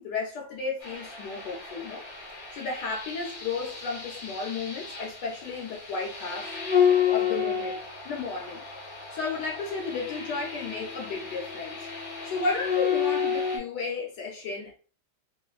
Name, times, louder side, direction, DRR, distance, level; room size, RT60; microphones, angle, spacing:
voice 1, 0.0-2.0 2.5-6.5 6.8-11.9 12.2-14.7, left 4 dB, 70° left, 1.2 m, -33 dB
sound 1, 0.8-13.6, left 8 dB, 45° left, 1.0 m, -31 dB
3.2 x 2.5 x 2.3 m
omnidirectional pair, 2.2 m